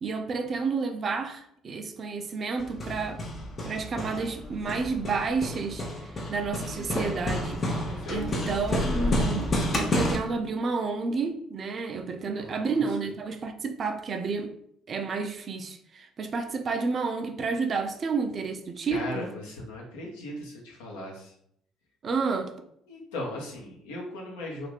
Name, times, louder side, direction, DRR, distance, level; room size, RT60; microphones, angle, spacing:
voice 1, 0.0-3.2 3.6-14.5 14.9-19.3 22.0-22.5, right 4 dB, 40° right, 7 dB, 0.4 m, -30 dB
Hammer, 2.6-10.2, left 1 dB, 35° left, 0.6 m, -30 dB
voice 2, 7.9-8.3 12.2-12.8 18.9-21.3 22.9-24.7, left 1 dB, 70° left, -2 dB, 0.7 m, -38 dB
2.5 x 2.4 x 3.3 m, 0.69 s
figure-of-eight pair, 55°, 0 cm